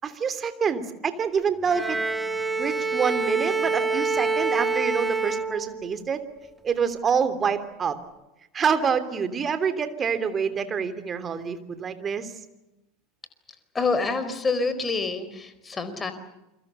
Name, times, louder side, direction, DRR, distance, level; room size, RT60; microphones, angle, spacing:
voice 1, 0.0-2.0 2.6-6.2 6.6-8.0 8.5-12.3, right 6 dB, 25° right, 11 dB, 3.1 m, -26 dB
Bowed string instrument, 1.7-6.1, right 4 dB, 10° right, 1.4 m, -26 dB
voice 2, 13.7-16.1, left 4 dB, 20° left, 10 dB, 4.3 m, -27 dB
29.0 x 24.0 x 6.9 m, 0.95 s
figure-of-eight pair, 80°, 0 cm